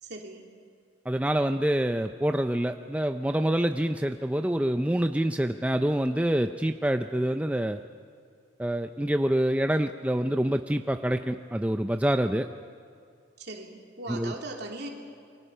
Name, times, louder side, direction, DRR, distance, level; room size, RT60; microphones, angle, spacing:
voice 1, 0.0-0.4 13.4-14.9, right 2 dB, 55° right, 1 dB, 3.1 m, -39 dB
voice 2, 1.1-7.8 8.6-12.5 14.1-14.3, right 1 dB, 5° right, 7 dB, 0.5 m, -26 dB
28.5 x 23.5 x 5.6 m, 2.3 s
head